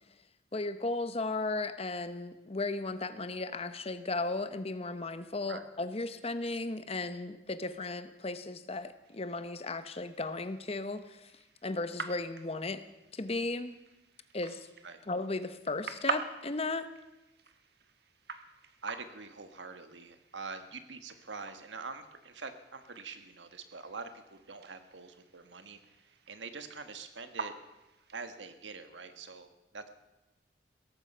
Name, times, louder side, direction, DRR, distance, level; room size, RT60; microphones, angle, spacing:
voice 1, 0.5-11.3 11.6-12.8 13.1-13.7 14.3-14.7 15.1-16.9, left 3 dB, 35° left, 11 dB, 0.9 m, -35 dB
sound 1, 9.0-28.6, right 4 dB, 65° right, 1.3 m, -46 dB
voice 2, 18.8-27.5 28.1-29.9, right 4 dB, 90° right, 9 dB, 1.5 m, -45 dB
17.5 x 14.5 x 5.5 m, 1.0 s
head